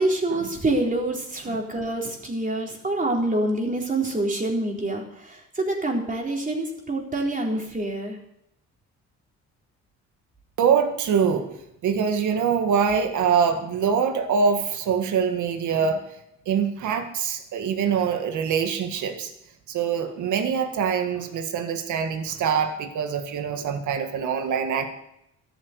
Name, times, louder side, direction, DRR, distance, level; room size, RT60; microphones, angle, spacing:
voice 1, 0.0-8.2, right 2 dB, 25° right, 0 dB, 4.0 m, -26 dB
voice 2, 10.6-11.5 11.8-16.0 16.5-19.3 19.7-24.9, right 6 dB, 75° right, 5 dB, 1.9 m, -24 dB
13.5 x 9.1 x 8.1 m, 0.80 s
cardioid pair, 90°, 30 cm